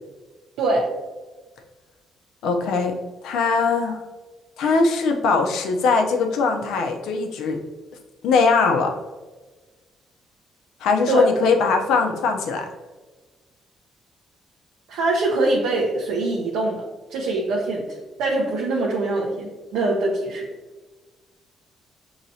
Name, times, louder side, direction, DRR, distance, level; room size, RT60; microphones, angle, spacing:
voice 1, 2.4-2.9 3.2-4.0 4.6-7.6 8.2-8.9 10.8-12.7, left 4 dB, 85° left, 3 dB, 0.6 m, -20 dB
voice 2, 14.9-16.8 17.1-17.8 18.2-20.5, right 2 dB, 90° right, -3 dB, 0.7 m, -23 dB
6.3 x 2.9 x 2.7 m, 1.3 s
cardioid pair, 90°, 0 cm